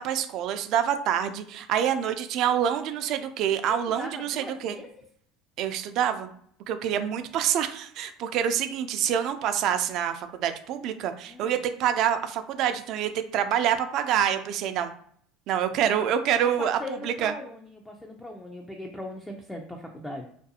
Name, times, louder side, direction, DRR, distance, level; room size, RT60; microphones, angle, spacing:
voice 1, 0.0-4.8 5.6-6.3 6.7-14.9 15.5-17.3, right 9 dB, 60° right, 9 dB, 0.3 m, -26 dB
voice 2, 3.7-4.9 11.3-11.5 15.7-16.1 16.4-20.3, left 1 dB, 10° left, 1 dB, 0.4 m, -39 dB
2.5 x 2.3 x 2.7 m, 0.62 s
supercardioid pair, 95°, 0 cm